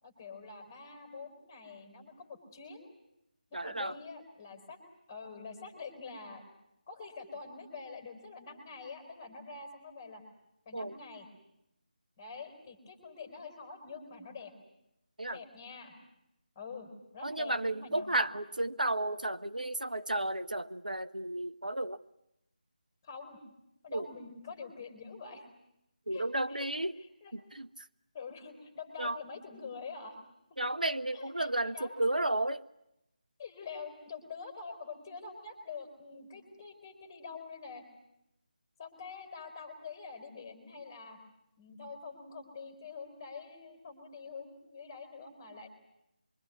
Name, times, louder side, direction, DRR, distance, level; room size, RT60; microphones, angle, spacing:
voice 1, 0.0-2.9 3.5-4.8 5.1-6.4 6.9-10.2 10.6-11.3 12.2-14.5 15.3-15.9 16.5-18.3 23.0-23.4 23.8-25.5 26.1-26.7 26.9-27.3 28.1-30.2 31.1-31.9 33.4-37.8 38.8-41.2 41.6-45.7, left 4 dB, 20° left, 7 dB, 5.1 m, -46 dB
voice 2, 3.5-3.9 10.7-11.0 15.2-15.4 17.2-22.0 23.9-24.1 26.1-27.0 27.3-27.7 29.0-29.2 30.6-32.6, right 1 dB, 80° right, 11 dB, 1.2 m, -33 dB
25.5 x 24.5 x 9.5 m, 0.83 s
figure-of-eight pair, 160°, 4 cm